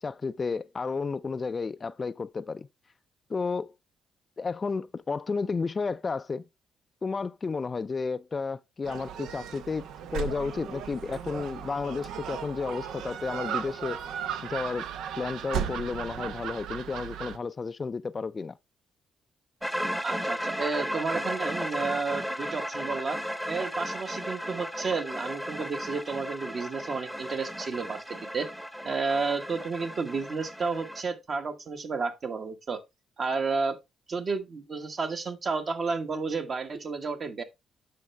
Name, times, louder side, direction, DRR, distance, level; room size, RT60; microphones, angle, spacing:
voice 1, 0.0-2.7 3.3-3.7 4.4-6.5 7.0-9.8 10.1-14.0 14.4-14.9 15.2-18.6, left 4 dB, 35° left, 0.4 m, -32 dB
Gull seagull, 8.8-17.4, right 8 dB, 85° right, 0.7 m, -36 dB
sound 1, 19.6-31.0, equal, 5° right, 0.9 m, -35 dB
voice 2, 20.0-23.2 23.5-28.5 28.8-32.8 33.2-33.8 34.1-37.4, right 4 dB, 45° right, 1.4 m, -31 dB
8.5 x 6.0 x 3.2 m
cardioid pair, 90°, 0 cm